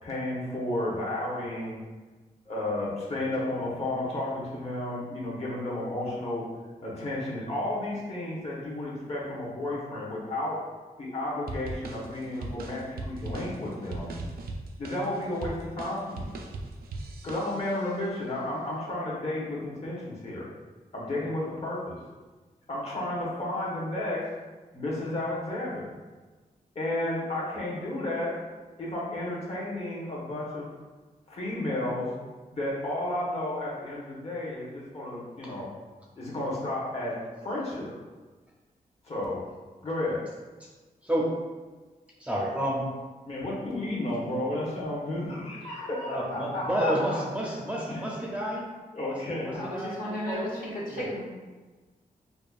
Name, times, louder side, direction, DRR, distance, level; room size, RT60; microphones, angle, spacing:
voice 1, 0.0-1.8 2.5-6.4 6.8-10.6 11.0-14.2 14.8-16.4 17.2-20.5 20.9-22.0 22.7-24.3 24.7-25.8 26.7-28.4 28.8-30.7 31.3-32.1 32.5-35.7 36.1-38.0 39.0-39.4 39.8-40.2 43.2-47.2 47.5-47.6 47.9-48.0 48.9-49.6, left 1 dB, 45° left, -6 dB, 1.1 m, -32 dB
sound 1, 11.5-17.9, right 2 dB, 85° right, 0.4 m, -39 dB
voice 2, 41.0-41.3 42.2-42.9 46.1-48.7 49.1-50.5 50.9-51.1, right 1 dB, 10° right, -4 dB, 0.5 m, -31 dB
voice 3, 49.5-50.5 50.7-51.2, left 1 dB, 70° left, -5 dB, 1.0 m, -34 dB
5.1 x 2.3 x 2.4 m, 1.3 s
wide cardioid pair, 145°, 15 cm